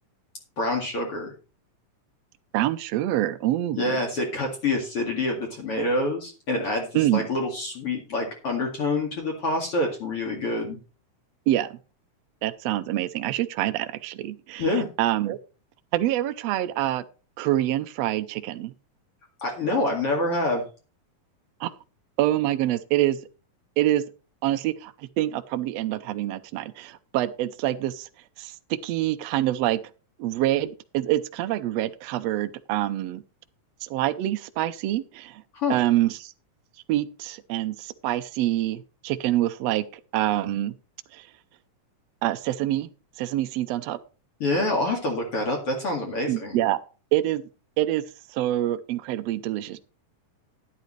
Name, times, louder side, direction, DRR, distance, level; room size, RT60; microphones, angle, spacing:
voice 1, 0.6-1.3 3.7-10.8 14.6-14.9 19.4-20.6 35.5-35.8 44.4-46.6, left 2 dB, 45° left, 1 dB, 2.8 m, -26 dB
voice 2, 2.5-3.8 6.9-7.3 11.5-11.7 12.4-14.6 15.0-15.4 15.9-17.0 17.4-18.7 21.6-21.7 22.2-23.2 23.8-24.0 24.4-24.9 25.2-28.1 28.4-29.8 30.2-33.2 33.9-35.3 35.7-36.3 36.9-39.8 40.1-40.7 42.2-42.9 43.2-44.0 46.3-46.8 47.1-47.4 47.8-48.0 48.3-49.8, right 14 dB, 90° right, 9 dB, 1.4 m, -26 dB
12.0 x 11.0 x 3.2 m, 0.34 s
omnidirectional pair, 3.8 m